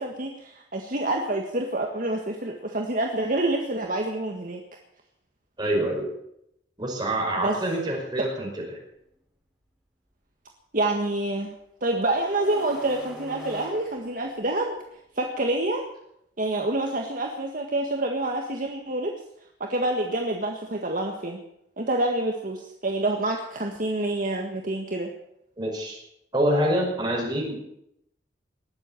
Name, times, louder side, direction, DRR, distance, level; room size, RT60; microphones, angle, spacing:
voice 1, 0.0-4.6 7.4-7.6 8.2-8.3 10.7-11.5 11.8-14.8 15.2-15.8 16.4-19.2 19.6-21.4 21.8-25.1, right 2 dB, 50° right, 2 dB, 1.7 m, -27 dB
voice 2, 5.6-6.1 6.8-8.8 25.6-26.0 26.3-27.6, right 1 dB, 25° right, -1 dB, 5.5 m, -26 dB
sound 1, 8.9-9.0 12.1-14.8, right 1 dB, 5° right, 4.5 m, -42 dB
20.0 x 8.0 x 8.9 m, 0.78 s
head